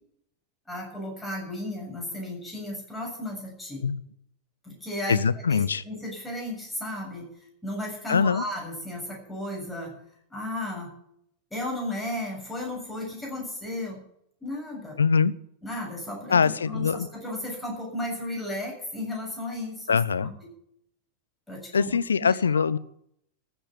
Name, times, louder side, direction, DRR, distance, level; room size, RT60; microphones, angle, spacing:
voice 1, 0.7-3.8 4.6-7.3 7.6-9.9 10.3-10.9 11.5-14.0 14.4-15.0 15.6-20.5 21.5-22.7, left 1 dB, 5° left, -2 dB, 7.4 m, -34 dB
voice 2, 5.1-5.8 8.1-8.4 15.0-15.3 16.3-17.1 19.9-20.3 21.7-22.8, left 6 dB, 70° left, 19 dB, 0.6 m, -23 dB
14.5 x 8.0 x 8.1 m, 0.71 s
figure-of-eight pair, 90°, 0 cm